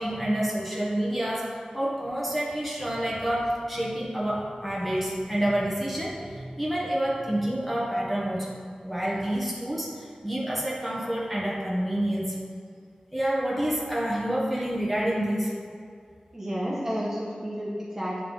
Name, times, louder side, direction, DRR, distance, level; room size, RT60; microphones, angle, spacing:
voice 1, 0.0-8.6 8.8-12.3 13.1-15.5, right 1 dB, 5° left, -6 dB, 1.5 m, -28 dB
voice 2, 16.3-18.2, equal, 20° right, -7 dB, 1.3 m, -31 dB
8.8 x 3.7 x 3.6 m, 2.2 s
wide cardioid pair, 70°, 3 cm